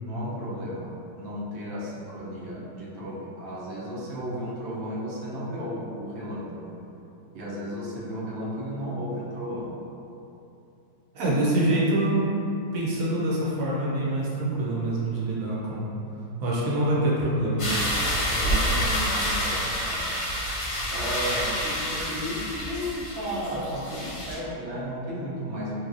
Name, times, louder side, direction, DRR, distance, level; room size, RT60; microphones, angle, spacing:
voice 1, 0.0-6.7 7.3-9.7 18.4-20.1 20.9-25.8, equal, 85° right, -7 dB, 0.5 m, -34 dB
voice 2, 11.1-12.2 12.7-15.9 16.4-17.7, right 1 dB, 65° right, -6 dB, 0.9 m, -25 dB
sound 1, 17.6-24.3, equal, 50° left, 0.8 m, -28 dB
3.1 x 2.6 x 2.4 m, 2.8 s
omnidirectional pair, 1.9 m